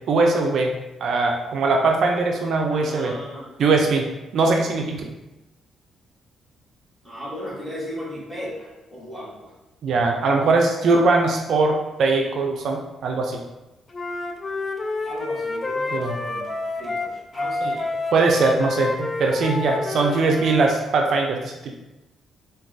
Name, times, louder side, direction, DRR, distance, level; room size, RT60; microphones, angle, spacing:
voice 1, 0.1-0.7 1.0-3.1 3.6-4.1 4.3-5.1 9.8-13.4 15.9-16.1 17.6-17.8 18.1-21.7, right 3 dB, 65° right, 1 dB, 0.3 m, -21 dB
voice 2, 2.7-3.5 7.0-9.5 15.0-16.5 16.8-17.7, equal, 5° left, -7 dB, 1.4 m, -36 dB
Wind instrument woodwind instrument, 13.9-20.8, left 2 dB, 35° left, 0.3 m, -28 dB
3.9 x 2.2 x 2.5 m, 1.0 s
cardioid pair, 90°, 0 cm